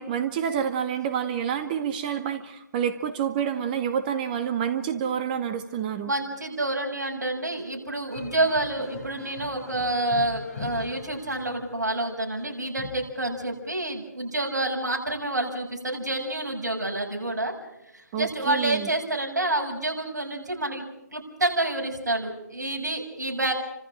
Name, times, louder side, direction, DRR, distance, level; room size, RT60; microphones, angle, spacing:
voice 1, 0.0-6.1 18.1-18.9, right 8 dB, 30° right, 9 dB, 1.9 m, -28 dB
voice 2, 6.0-17.5 17.9-20.8 21.1-23.5, right 2 dB, 65° right, 1 dB, 6.9 m, -28 dB
sound 1, 8.1-13.4 14.1-14.2 15.6-15.7 15.9-16.0 17.2-17.3 18.5-18.6 20.6-20.7, left 4 dB, 50° left, 6.6 m, -42 dB
29.0 x 26.5 x 5.0 m, 0.88 s
figure-of-eight pair, 140°, 10 cm